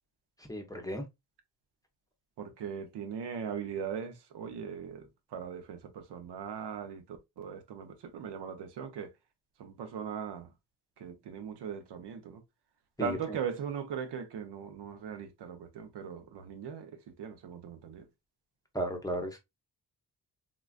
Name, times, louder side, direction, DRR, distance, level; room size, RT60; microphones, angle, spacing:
voice 1, 0.5-1.0 13.0-13.4 18.7-19.4, equal, 10° left, 0.7 m, -35 dB
voice 2, 2.4-9.1 9.6-10.5 11.0-12.4 13.0-18.1, right 7 dB, 85° right, 0.8 m, -39 dB
3.7 x 2.3 x 2.3 m
cardioid pair, 100°, 40 cm